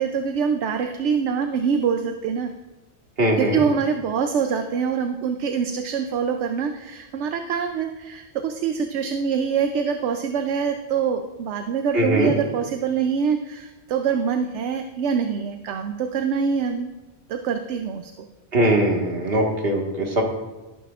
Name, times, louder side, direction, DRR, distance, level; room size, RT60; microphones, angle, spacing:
voice 1, 0.0-2.5 3.4-16.9 17.3-18.1, right 6 dB, 75° right, 6 dB, 0.9 m, -25 dB
voice 2, 3.2-3.6 11.9-12.3 18.5-20.2, right 1 dB, 55° right, 0 dB, 1.8 m, -21 dB
18.0 x 9.3 x 2.4 m, 1.1 s
omnidirectional pair, 1.2 m